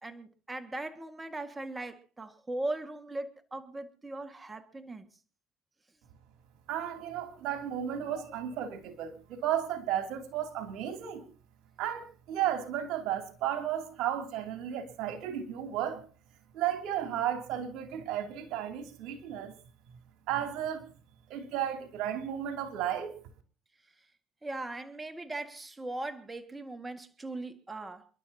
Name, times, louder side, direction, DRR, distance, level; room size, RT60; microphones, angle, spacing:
voice 1, 0.0-5.1 7.2-7.4 24.4-28.1, right 2 dB, 20° right, 1.9 m, -39 dB
voice 2, 6.7-11.2 11.8-16.0 16.5-19.5 20.3-20.8 21.3-23.1, right 10 dB, 75° right, 2.8 m, -33 dB
30.0 x 11.5 x 2.9 m
supercardioid pair, 85°, 0 cm